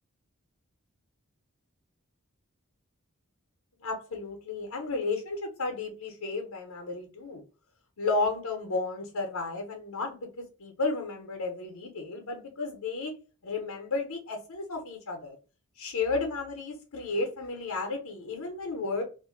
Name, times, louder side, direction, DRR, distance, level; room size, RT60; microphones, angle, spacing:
voice 1, 3.8-7.4 8.0-13.1 13.4-15.4 15.8-19.0, left 3 dB, 90° left, 0.8 m, -33 dB
2.5 x 2.1 x 3.7 m
head